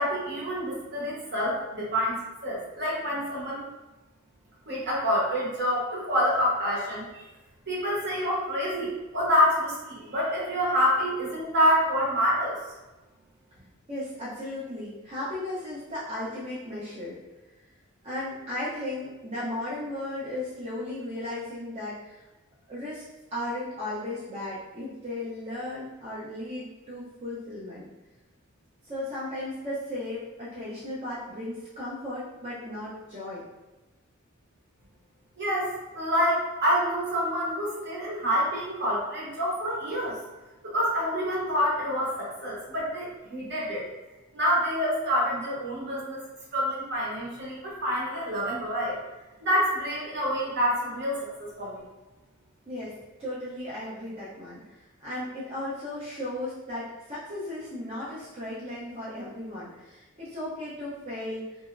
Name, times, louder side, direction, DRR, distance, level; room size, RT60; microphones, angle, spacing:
voice 1, 0.0-3.6 4.7-7.2 7.7-12.6 35.4-40.2 40.6-43.8 44.3-46.2 46.5-49.0 49.4-51.8, equal, 50° right, -5 dB, 1.0 m, -27 dB
voice 2, 13.9-17.2 18.0-22.2 22.7-23.0 23.3-27.9 28.8-33.4 52.7-52.9 53.2-61.5, left 1 dB, 30° right, -10 dB, 0.6 m, -35 dB
2.9 x 2.7 x 2.4 m, 1.1 s
head